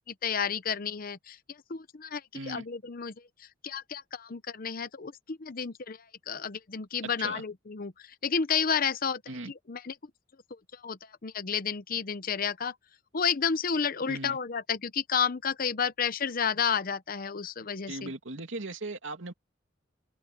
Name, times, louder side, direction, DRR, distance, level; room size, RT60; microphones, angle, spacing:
voice 1, 0.2-1.4 1.7-3.1 3.6-6.0 6.3-7.9 8.2-9.2 9.7-9.9 10.8-12.7 13.1-18.1, left 6 dB, 50° left, 0.8 m, -31 dB
voice 2, 2.3-2.6 7.2-7.4 9.3-9.5 14.1-14.4 17.9-19.3, right 2 dB, 85° right, 2.5 m, -38 dB
open air
head